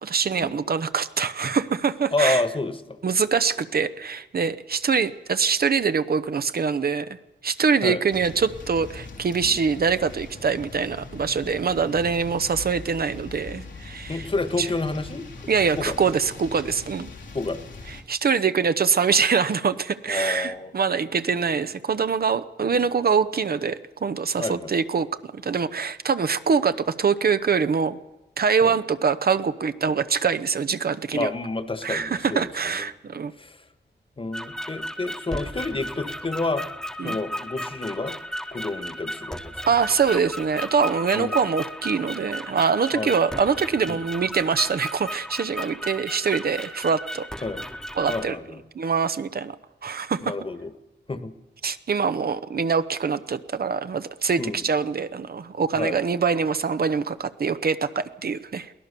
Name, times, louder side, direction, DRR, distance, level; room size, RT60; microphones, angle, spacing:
voice 1, 0.0-2.4 3.0-7.2 7.4-14.3 14.6-14.7 15.5-17.1 17.9-28.0 28.4-31.3 31.8-33.3 37.0-37.2 39.7-47.3 48.0-48.4 48.7-49.6 49.8-50.3 51.6-58.7, right 5 dB, 55° right, 12 dB, 0.9 m, -24 dB
voice 2, 2.1-3.0 7.8-8.0 9.4-9.6 14.1-15.3 15.8-16.0 17.3-17.6 20.1-20.7 21.5-21.6 24.4-24.7 28.6-28.7 29.8-29.9 31.1-32.4 32.7-32.9 33.4-33.6 34.2-36.6 37.0-38.1 38.5-39.5 41.1-41.4 42.9-43.1 43.9-44.1 47.4-47.6 48.1-48.6 50.2-50.7 51.1-51.3 54.4-54.6 55.7-56.0, left 3 dB, 30° left, 10 dB, 1.5 m, -29 dB
sound 1, 8.1-18.0, left 3 dB, 85° left, 3.0 m, -41 dB
sound 2, 34.3-48.3, equal, 5° left, 1.2 m, -35 dB
22.5 x 17.5 x 6.9 m, 1.0 s
wide cardioid pair, 110°, 18 cm